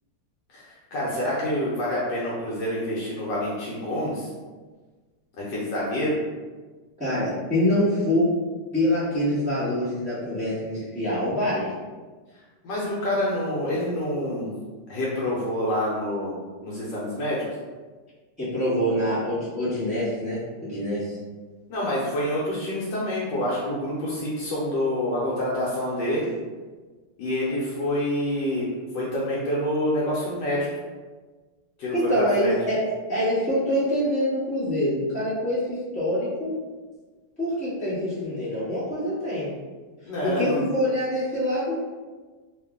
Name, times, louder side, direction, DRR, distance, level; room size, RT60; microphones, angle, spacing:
voice 1, 0.5-4.3 5.4-6.2 12.6-14.6 14.9-16.4 16.6-17.4 21.7-26.3 27.2-28.7 28.9-30.7 31.8-32.6 40.1-40.7, left 1 dB, 75° left, -6 dB, 1.3 m, -27 dB
voice 2, 7.0-8.3 8.7-11.7 18.4-21.2 31.9-32.8 33.1-36.5 37.4-39.5 40.2-41.7, equal, 5° right, -11 dB, 0.9 m, -25 dB
3.0 x 2.5 x 3.6 m, 1.4 s
omnidirectional pair, 2.1 m